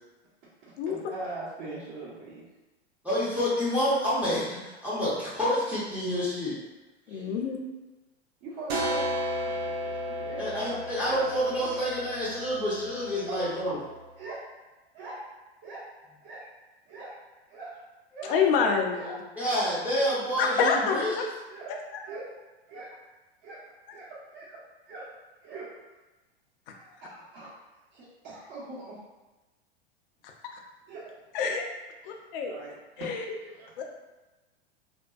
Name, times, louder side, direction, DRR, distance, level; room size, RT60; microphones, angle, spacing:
voice 1, 0.6-2.5 7.1-7.4 8.4-11.4 13.2-13.6 14.2-14.4 14.9-15.2 15.6-15.8 16.2-16.4 16.9-17.1 17.5-17.7 18.1-18.4 18.9-19.1 21.5-21.7 22.0-22.2 22.7-22.9 23.4-23.6 23.9-24.6 24.9-25.0 25.4-25.7 26.7-27.5 27.9-29.0 30.9-31.0 31.4-31.5 32.1-33.7, right 2 dB, 50° right, -11 dB, 1.0 m, -42 dB
voice 2, 3.0-6.6 10.4-13.8 19.4-21.3, equal, 5° right, -9 dB, 0.6 m, -28 dB
voice 3, 7.1-7.6 18.3-19.2 20.4-21.2 31.3-31.7 32.0-32.5 33.0-33.3 33.8-33.9, left 5 dB, 55° left, 2 dB, 0.5 m, -26 dB
sound 1, 8.7-14.1, equal, 70° right, 0.6 m, -34 dB
2.6 x 2.1 x 2.3 m, 1.1 s
hypercardioid pair, 95°, 33 cm